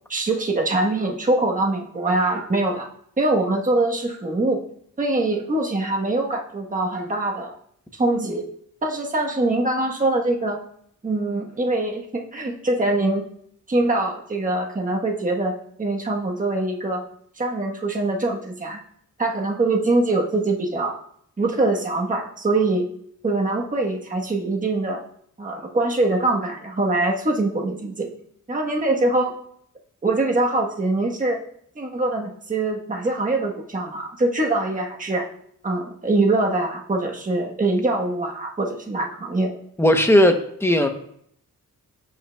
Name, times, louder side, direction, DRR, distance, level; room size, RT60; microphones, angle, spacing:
voice 1, 0.1-2.9 3.2-4.6 5.0-7.5 7.9-8.4 8.8-10.6 11.0-13.2 13.7-17.0 17.4-18.8 19.2-20.9 21.4-22.9 23.2-25.0 25.4-28.1 28.5-29.3 30.0-31.4 31.8-35.2 35.6-39.6, right 2 dB, 25° right, 0 dB, 1.1 m, -23 dB
voice 2, 39.8-40.9, left 1 dB, 10° left, 5 dB, 0.8 m, -17 dB
16.0 x 5.5 x 2.2 m, 0.66 s
wide cardioid pair, 150°, 33 cm